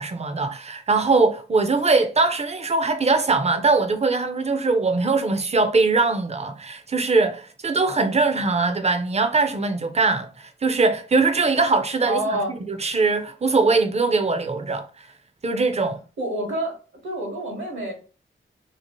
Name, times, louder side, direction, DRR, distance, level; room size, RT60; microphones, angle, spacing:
voice 1, 0.0-12.4 12.7-14.9 15.4-16.0, right 3 dB, 30° right, 0.5 m, -21 dB
voice 2, 12.0-12.7 16.2-16.8 17.0-17.9, right 1 dB, 70° right, 1.1 m, -27 dB
2.8 x 2.8 x 2.9 m
wide cardioid pair, 125°, 21 cm